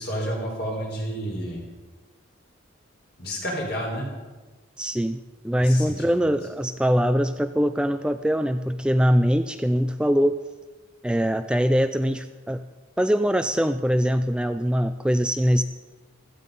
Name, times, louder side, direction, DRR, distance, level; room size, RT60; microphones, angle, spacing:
voice 1, 0.0-1.6 3.2-4.1 5.6-6.3, equal, 55° left, -1 dB, 5.1 m, -30 dB
voice 2, 4.8-5.2 5.4-10.4 11.0-12.6 13.0-15.6, equal, 5° right, 9 dB, 0.4 m, -22 dB
16.0 x 14.5 x 5.4 m, 1.2 s
head